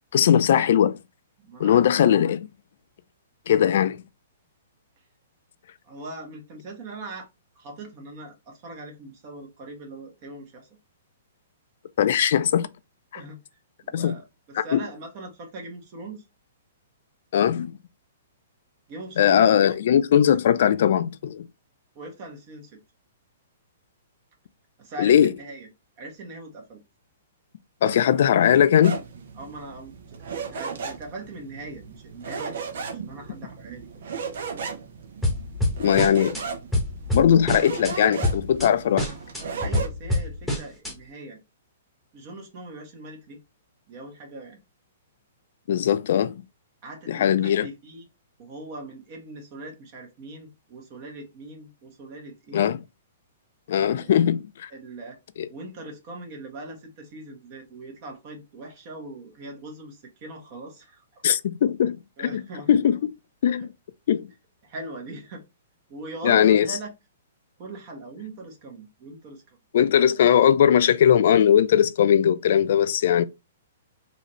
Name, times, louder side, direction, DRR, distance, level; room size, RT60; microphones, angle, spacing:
voice 1, 0.1-1.0 1.6-2.5 3.5-4.0 12.0-12.7 13.9-14.1 14.6-14.8 17.3-17.7 19.2-21.5 25.0-25.3 27.8-29.0 35.8-36.4 37.1-39.1 45.7-46.4 47.1-47.7 52.5-52.8 53.7-54.7 55.4-55.5 61.2-62.4 62.7-63.1 63.4-63.7 64.1-64.3 66.2-66.7 69.7-73.2, left 9 dB, 60° left, 0.4 m, -19 dB
voice 2, 1.4-1.8 5.8-7.3 7.5-10.7 13.1-13.4 13.8-16.2 18.9-19.8 21.9-22.7 24.8-25.7 26.0-26.8 29.4-33.9 39.6-41.4 42.1-43.4 43.9-44.6 46.8-48.1 48.4-52.7 53.9-54.1 54.7-55.2 55.5-61.2 62.2-62.8 63.6-63.7 64.6-65.4 65.9-66.9 67.6-69.6, right 2 dB, 40° right, 1.6 m, -40 dB
sound 1, 28.8-39.9, right 5 dB, 65° right, 0.8 m, -36 dB
sound 2, 35.2-36.4 36.7-37.9 38.2-38.7 39.0-40.9, left 1 dB, ahead, 1.2 m, -26 dB
3.9 x 2.7 x 3.1 m
hypercardioid pair, 135°, 0 cm